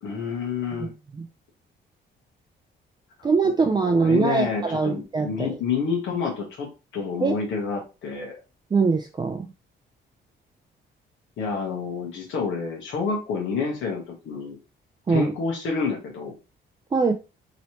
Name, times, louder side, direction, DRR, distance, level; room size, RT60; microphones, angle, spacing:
voice 1, 0.0-0.9 3.8-8.4 11.4-14.6 15.1-16.3, left 5 dB, 75° left, 0 dB, 1.1 m, -29 dB
voice 2, 0.8-1.3 3.2-5.6 7.2-7.4 8.7-9.5 15.1-15.3 16.9-17.1, right 4 dB, 20° right, 4 dB, 0.4 m, -23 dB
3.1 x 2.8 x 2.9 m, 0.28 s
cardioid pair, 90°, 20 cm